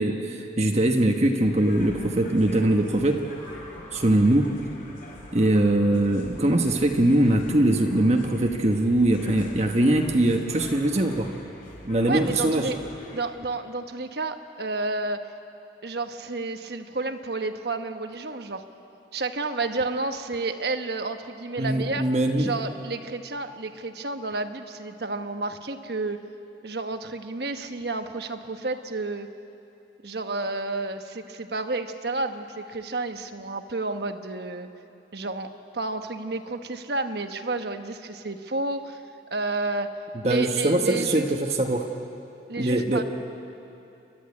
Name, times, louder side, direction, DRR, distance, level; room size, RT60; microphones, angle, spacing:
voice 1, 0.0-3.2 3.9-4.5 5.3-11.3 11.8-12.7 21.6-22.5 40.2-41.9 42.6-43.0, right 1 dB, 35° right, 2 dB, 1.1 m, -22 dB
sound 1, 1.4-13.2, left 1 dB, 50° left, 4.4 m, -43 dB
voice 2, 12.1-12.8 13.1-15.2 15.8-18.7 19.1-22.1 22.4-26.2 26.6-29.3 30.0-34.7 35.1-39.0 39.3-39.9 40.2-41.3 42.5-43.0, right 3 dB, 60° right, 7 dB, 1.2 m, -31 dB
30.0 x 13.0 x 9.7 m, 2.8 s
head